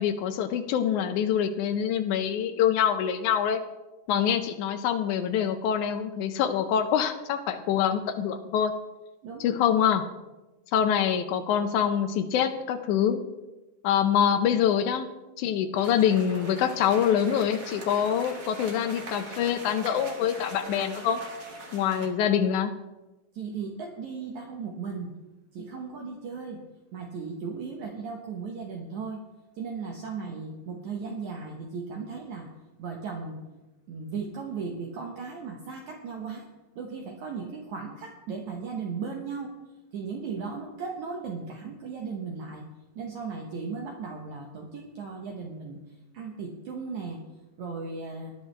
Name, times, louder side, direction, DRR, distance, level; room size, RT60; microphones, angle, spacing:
voice 1, 0.0-3.6 4.1-8.7 9.4-10.0 10.7-13.2 13.8-15.1 15.4-21.2 21.7-22.7, left 9 dB, 85° left, 7 dB, 1.7 m, -25 dB
voice 2, 9.2-9.6 23.3-25.1 25.5-26.6 26.9-29.2 29.6-32.5 32.8-33.4 33.9-36.5 36.8-39.5 39.9-42.6 43.0-45.8 46.1-47.2 47.6-48.4, right 5 dB, 65° right, 1 dB, 2.1 m, -36 dB
sound 1, 15.8-22.1, right 2 dB, 45° right, 1.1 m, -41 dB
18.5 x 11.0 x 3.3 m, 1.1 s
omnidirectional pair, 4.3 m